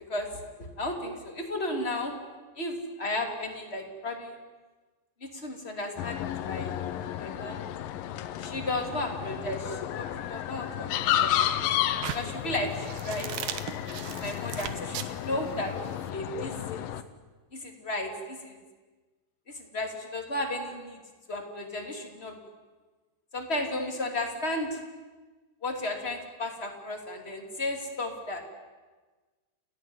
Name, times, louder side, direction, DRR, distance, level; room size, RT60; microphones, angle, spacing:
voice 1, 0.1-2.1 2.6-4.4 5.2-6.7 7.2-7.6 8.4-11.7 12.1-13.3 14.1-15.7 16.1-16.9 17.5-18.6 19.5-21.0 21.3-22.4 23.3-24.8 25.6-28.4, left 1 dB, 15° left, 2 dB, 2.4 m, -34 dB
sound 1, 6.0-17.0, left 11 dB, 70° left, 2.3 m, -32 dB
sound 2, 12.0-16.1, right 10 dB, 70° right, 2.0 m, -38 dB
29.5 x 15.5 x 9.7 m, 1.3 s
omnidirectional pair, 4.9 m